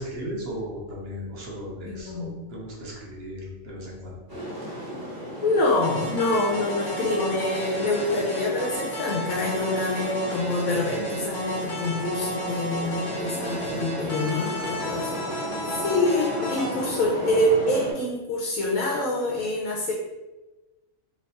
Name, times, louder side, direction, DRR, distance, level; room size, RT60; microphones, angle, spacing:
voice 1, 0.0-4.1, equal, 55° right, -3 dB, 0.9 m, -36 dB
voice 2, 1.9-2.4 5.4-19.9, left 2 dB, 80° left, -2 dB, 1.0 m, -26 dB
sound 1, 4.3-17.9, equal, 20° right, 0.6 m, -35 dB
sound 2, 5.8-16.9, equal, 40° left, 0.9 m, -34 dB
3.0 x 2.3 x 4.0 m, 1.1 s
omnidirectional pair, 1.4 m